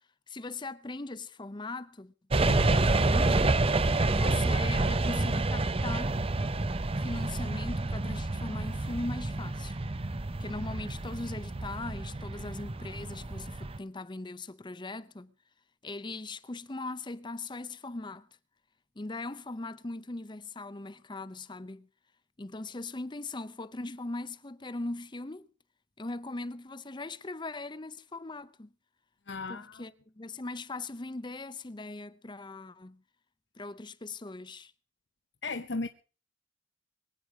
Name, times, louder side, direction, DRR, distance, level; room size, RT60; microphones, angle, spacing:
voice 1, 0.3-2.1 2.4-3.6 4.1-6.2 7.0-9.8 10.4-15.3 15.8-18.3 19.0-21.9 22.4-25.5 26.0-28.7 29.5-33.0 33.6-34.7, left 2 dB, 25° left, 0.7 m, -40 dB
sound 1, 2.3-13.8, right 2 dB, 30° right, 0.7 m, -28 dB
voice 2, 29.3-29.8 35.4-35.9, left 3 dB, 65° left, 0.9 m, -35 dB
23.0 x 9.2 x 4.9 m
head